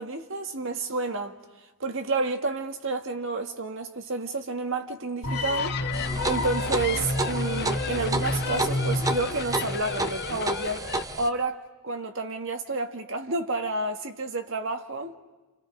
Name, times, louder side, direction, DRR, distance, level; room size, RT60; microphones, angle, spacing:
voice 1, 0.0-1.4 1.8-5.8 6.3-10.9 11.2-15.2, right 3 dB, 60° right, 1.7 m, -30 dB
sound 1, 5.2-10.3, left 2 dB, 85° left, 2.1 m, -30 dB
sound 2, 5.3-11.0, left 6 dB, 50° left, 0.7 m, -36 dB
sound 3, 5.9-11.3, right 2 dB, 15° right, 0.9 m, -31 dB
30.0 x 29.0 x 5.1 m
head